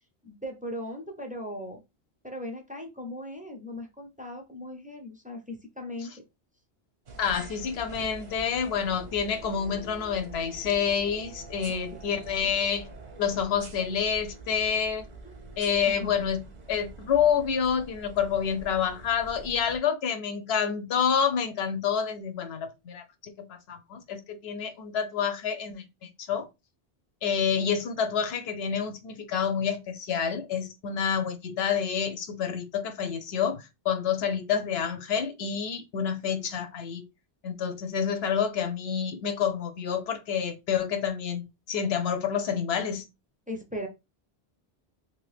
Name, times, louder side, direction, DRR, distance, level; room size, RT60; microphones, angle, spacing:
voice 1, 0.2-1.8 2.2-6.1 11.7-11.8 12.2-12.6 15.2-15.3 15.9-16.1 43.5-43.9, left 1 dB, 10° right, 0.4 m, -38 dB
sound 1, 7.1-19.8, right 3 dB, 45° right, 0.7 m, -45 dB
voice 2, 7.2-12.9 13.2-15.0 15.6-25.8 26.2-26.5 27.2-37.0 37.4-43.1, left 7 dB, 70° left, 0.8 m, -28 dB
2.8 x 2.6 x 3.2 m
omnidirectional pair, 1.1 m